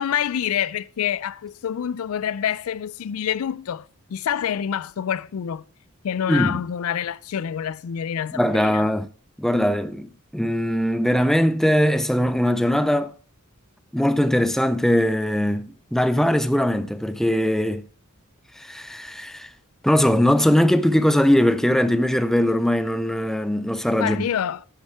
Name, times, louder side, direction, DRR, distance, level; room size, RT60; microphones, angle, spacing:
voice 1, 0.0-5.6 6.0-8.8 24.0-24.7, left 9 dB, 85° left, 0.4 m, -27 dB
voice 2, 6.3-6.6 8.3-9.1 9.4-13.1 13.9-17.9 18.6-19.5 19.8-24.2, equal, ahead, 0.4 m, -20 dB
9.7 x 6.5 x 4.6 m
head